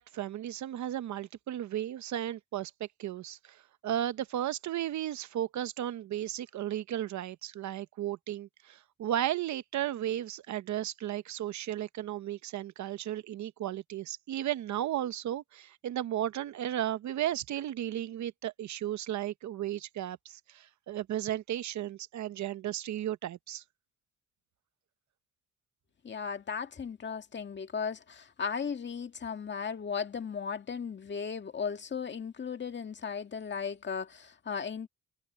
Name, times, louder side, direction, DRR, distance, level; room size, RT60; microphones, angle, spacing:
voice 1, 0.0-23.6, right 12 dB, 70° right, 0.9 m, -34 dB
voice 2, 26.0-34.9, left 6 dB, 35° left, 2.0 m, -36 dB
cardioid pair, 90°, 30 cm